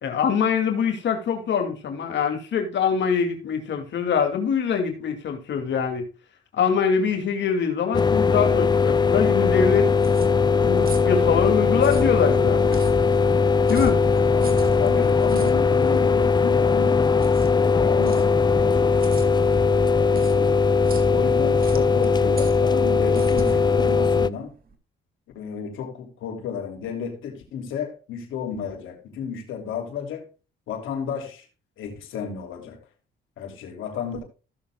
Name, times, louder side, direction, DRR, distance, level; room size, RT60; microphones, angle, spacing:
voice 1, 0.0-6.1 6.6-9.9 10.6-12.8 13.7-14.0, left 6 dB, 65° left, 2.6 m, -24 dB
sound 1, 7.9-24.3, left 5 dB, 20° left, 0.5 m, -19 dB
sound 2, 9.7-24.7, right 3 dB, 50° right, 2.2 m, -39 dB
voice 2, 14.3-20.5 21.1-24.5 25.3-30.3 30.7-31.4 31.8-32.8 33.4-34.2, left 7 dB, 85° left, 3.3 m, -33 dB
16.0 x 7.2 x 2.3 m
cardioid pair, 90°, 20 cm